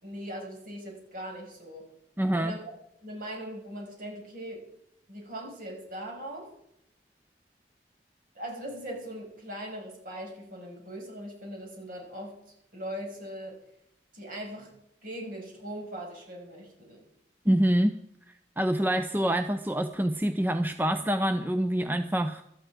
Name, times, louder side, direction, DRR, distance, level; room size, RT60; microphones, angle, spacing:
voice 1, 0.0-1.8 2.4-2.7 3.0-4.7 5.1-6.5 8.3-12.4 12.7-13.6 14.1-14.7 15.0-17.0, equal, 50° right, 0 dB, 5.9 m, -40 dB
voice 2, 2.2-2.5 17.5-18.0 18.6-22.4, right 1 dB, 10° right, 9 dB, 0.5 m, -26 dB
17.5 x 12.5 x 4.9 m, 0.78 s
head